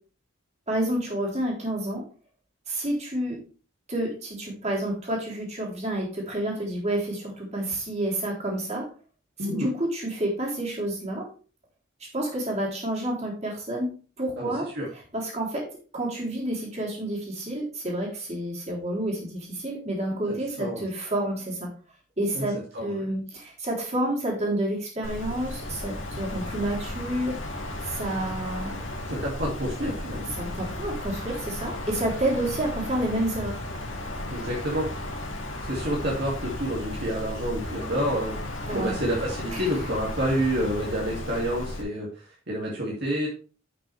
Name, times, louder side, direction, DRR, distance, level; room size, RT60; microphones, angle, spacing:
voice 1, 0.7-2.0 2.7-3.4 3.9-8.9 9.5-11.3 12.1-15.7 15.9-21.7 22.2-27.4 27.8-28.8 30.4-33.6 38.7-39.0 39.5-39.7, right 1 dB, 35° right, -3 dB, 3.5 m, -29 dB
voice 2, 9.4-9.7 14.4-14.9 20.3-20.8 22.3-22.5 22.7-23.1 29.1-30.3 34.3-34.9 35.6-38.3 38.7-42.1 42.5-43.3, equal, 55° right, -4 dB, 2.5 m, -28 dB
Wind, 25.0-41.8, left 1 dB, 70° left, 2.2 m, -34 dB
11.0 x 6.0 x 3.4 m, 0.37 s
head